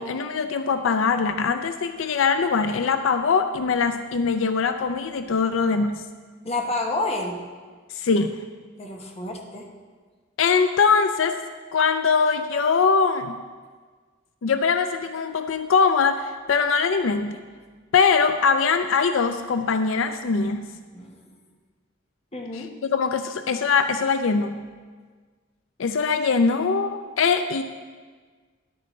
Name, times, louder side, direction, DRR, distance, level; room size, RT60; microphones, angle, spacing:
voice 1, 0.0-6.0 7.9-8.4 10.4-11.4 11.7-13.4 14.4-17.4 17.9-20.7 22.5-24.6 25.8-27.6, left 5 dB, 80° left, 9 dB, 0.5 m, -22 dB
voice 2, 6.4-7.4 8.8-9.7 20.9-21.3 22.3-22.7, left 2 dB, 30° left, 1 dB, 1.2 m, -29 dB
13.0 x 10.5 x 3.2 m, 1.5 s
head